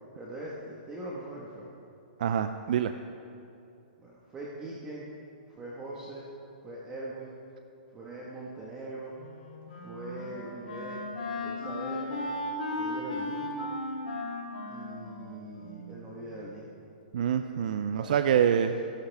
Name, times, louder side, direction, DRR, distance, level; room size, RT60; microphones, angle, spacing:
voice 1, 0.1-1.7 4.0-5.1 5.5-6.3 6.6-7.4 7.9-9.2 9.7-11.0 11.4-12.2 12.8-13.6 14.7-16.7 17.9-18.8, right 1 dB, 15° right, -5 dB, 1.5 m, -41 dB
voice 2, 2.2-2.9 17.1-18.7, right 8 dB, 55° right, 8 dB, 0.5 m, -26 dB
Wind instrument woodwind instrument, 9.2-16.4, left 2 dB, 70° left, 3.4 m, -36 dB
26.0 x 11.5 x 3.5 m, 2.7 s
hypercardioid pair, 165°, 5 cm